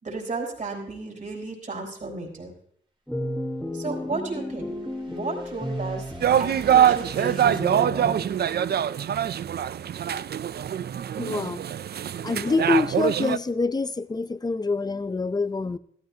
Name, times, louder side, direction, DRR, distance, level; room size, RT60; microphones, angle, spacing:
voice 1, 0.0-2.5 3.7-4.7 5.1-6.1 6.4-8.3, right 3 dB, 40° right, 0 dB, 3.9 m, -33 dB
sound 1, 3.1-6.8, equal, ahead, 1.4 m, -33 dB
sound 2, 3.6-7.7, right 2 dB, 25° right, 1.7 m, -48 dB
sound 3, 6.2-13.4, right 9 dB, 60° right, 0.4 m, -24 dB
voice 2, 11.2-11.6 12.2-15.8, left 3 dB, 20° left, 14 dB, 0.5 m, -26 dB
15.0 x 13.0 x 2.8 m, 0.65 s
wide cardioid pair, 105°, 19 cm